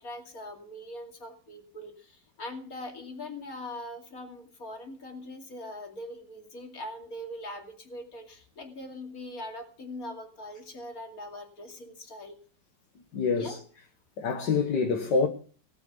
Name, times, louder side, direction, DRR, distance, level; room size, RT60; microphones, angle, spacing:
voice 1, 0.0-12.4 13.3-13.6, left 1 dB, 50° left, 3.1 m, -41 dB
voice 2, 13.1-13.6 14.2-15.3, left 5 dB, 70° left, 1.9 m, -26 dB
19.0 x 8.2 x 6.7 m
omnidirectional pair, 2.0 m